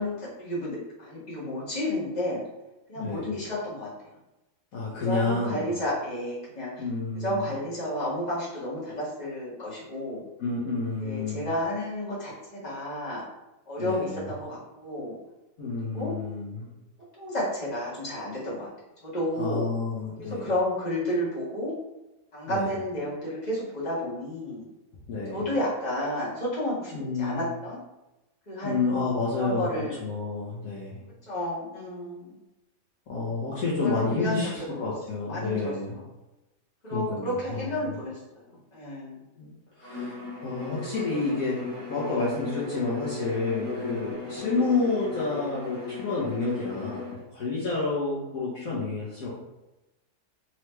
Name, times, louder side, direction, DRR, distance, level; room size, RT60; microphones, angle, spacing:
voice 1, 0.0-2.4 2.9-3.9 5.0-6.8 7.1-10.2 11.0-13.2 13.7-15.1 15.9-16.1 17.2-18.7 19.0-19.7 20.2-21.7 22.3-24.6 25.3-26.9 27.2-27.8 28.5-29.1 29.4-30.0 31.3-32.3 33.8-34.9 35.3-35.7 36.8-38.2 38.5-39.2 42.1-42.2 44.3-44.4 47.7-47.8, left 1 dB, 25° left, -8 dB, 1.6 m, -31 dB
voice 2, 2.9-3.4 4.7-5.7 6.8-7.4 10.4-11.5 13.8-14.3 15.6-16.7 19.4-20.5 22.5-22.7 25.1-25.5 26.9-27.4 28.6-29.7 30.0-31.0 33.1-35.9 36.9-37.9 39.4-41.6 41.9-49.3, left 3 dB, 60° left, -7 dB, 1.4 m, -30 dB
Bowed string instrument, 39.8-47.2, left 3 dB, 35° right, 1.5 m, -36 dB
4.5 x 3.1 x 3.2 m, 0.99 s
omnidirectional pair, 1.8 m